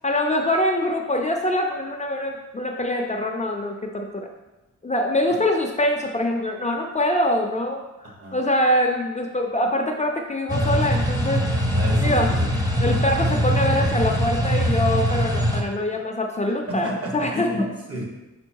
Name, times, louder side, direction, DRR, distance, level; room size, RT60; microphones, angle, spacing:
voice 1, 0.0-4.3 4.8-11.5 12.0-12.3 12.8-17.5, left 1 dB, 25° left, 2 dB, 0.5 m, -24 dB
voice 2, 8.0-8.4 11.7-12.5 15.9-16.0 16.7-18.0, equal, 50° right, -2 dB, 1.5 m, -31 dB
sound 1, 10.5-15.6, equal, 10° right, 0.7 m, -22 dB
5.3 x 4.6 x 4.6 m, 1.0 s
wide cardioid pair, 170°, 30 cm